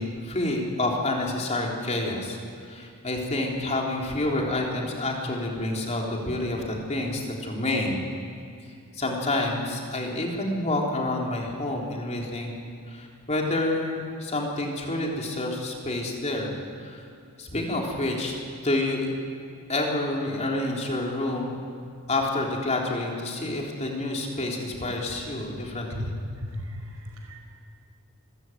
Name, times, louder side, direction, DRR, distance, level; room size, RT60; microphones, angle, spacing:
voice 1, 0.0-2.4 2.6-8.0 8.9-12.5 12.9-16.5 16.8-17.0 17.4-19.1 19.7-21.7 22.1-26.1, left 2 dB, 30° left, -1 dB, 3.6 m, -28 dB
voice 2, 26.4-27.4, left 1 dB, 85° right, 2 dB, 5.1 m, -35 dB
27.0 x 14.0 x 9.3 m, 2.4 s
head